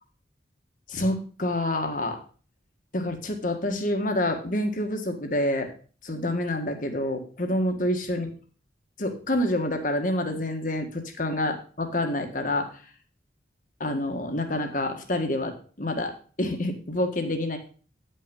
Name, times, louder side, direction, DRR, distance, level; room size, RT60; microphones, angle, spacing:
voice 1, 0.9-2.2 2.9-5.7 6.0-8.3 9.0-12.7 13.8-17.6, left 1 dB, 45° left, 5 dB, 1.6 m, -27 dB
9.7 x 5.7 x 5.3 m, 0.39 s
head